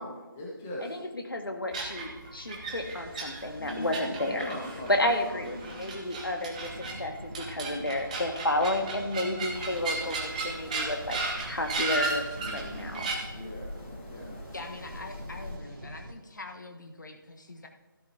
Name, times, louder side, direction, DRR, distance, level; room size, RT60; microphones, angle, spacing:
voice 1, 0.0-0.9 3.6-4.0 4.3-4.9 5.4-5.8 12.4-13.0 13.3-13.7 14.1-14.4, left 1 dB, 5° left, -5 dB, 0.3 m, -40 dB
voice 2, 0.8-4.5 4.9-6.7 7.0-11.2 11.5-12.3 12.5-13.1, left 1 dB, 75° left, 4 dB, 1.8 m, -31 dB
sound 1, 1.7-13.1, right 3 dB, 20° right, 1.0 m, -36 dB
sound 2, 2.7-16.1, right 1 dB, 85° right, 2.2 m, -47 dB
sound 3, 9.5-15.6, left 2 dB, 35° left, 1.9 m, -46 dB
voice 3, 14.5-17.7, left 2 dB, 55° left, 4 dB, 1.3 m, -43 dB
13.5 x 12.5 x 2.8 m, 1.2 s
figure-of-eight pair, 160°, 12 cm